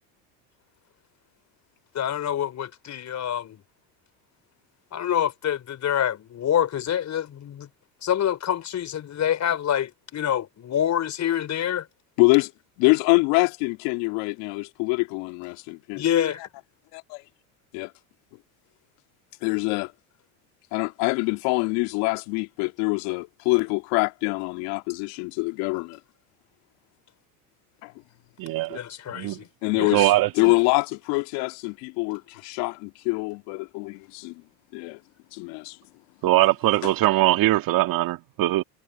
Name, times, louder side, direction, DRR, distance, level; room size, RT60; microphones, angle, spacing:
voice 1, 1.9-3.6 4.9-7.7 8.0-11.9 16.0-16.4 28.7-29.5 29.8-30.1, left 10 dB, 40° left, 5.1 m, -26 dB
voice 2, 12.2-12.5 12.8-16.0 17.7-17.9 19.4-19.9 20.7-26.0 27.8-27.9 29.6-30.1 30.4-34.4 34.7-35.0 35.3-35.8, left 26 dB, 65° left, 2.0 m, -25 dB
voice 3, 28.4-28.8 29.1-29.4 29.8-30.3 36.2-38.6, right 16 dB, 55° right, 1.9 m, -21 dB
hypercardioid pair, 85°, 42 cm